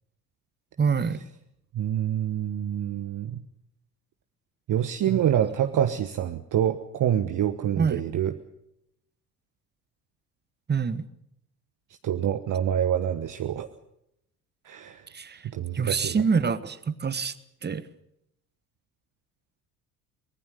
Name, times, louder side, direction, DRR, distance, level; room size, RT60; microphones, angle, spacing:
voice 1, 0.8-1.2 5.1-5.2 7.7-8.0 10.7-11.1 15.1-15.5 15.7-17.3 17.6-17.9, right 5 dB, 20° right, 1.4 m, -26 dB
voice 2, 1.7-3.4 4.7-8.3 12.0-13.7 14.6-15.1 15.4-16.2, right 10 dB, 40° right, 1.3 m, -26 dB
24.0 x 20.0 x 6.8 m
figure-of-eight pair, 55°, 47 cm